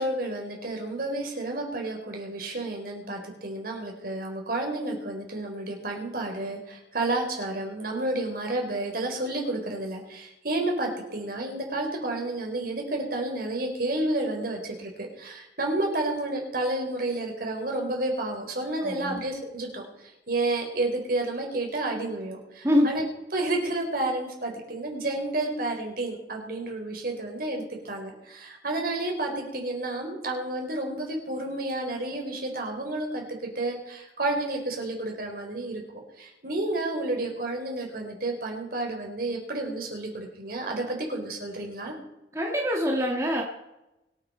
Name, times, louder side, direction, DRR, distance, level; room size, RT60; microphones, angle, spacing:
voice 1, 0.0-19.8 20.3-23.0 23.3-35.8 36.2-41.9, right 2 dB, 55° right, 1 dB, 4.0 m, -30 dB
voice 2, 18.8-19.2 22.6-22.9 42.3-43.4, equal, 15° right, 0 dB, 1.6 m, -24 dB
24.0 x 8.9 x 4.3 m, 0.97 s
head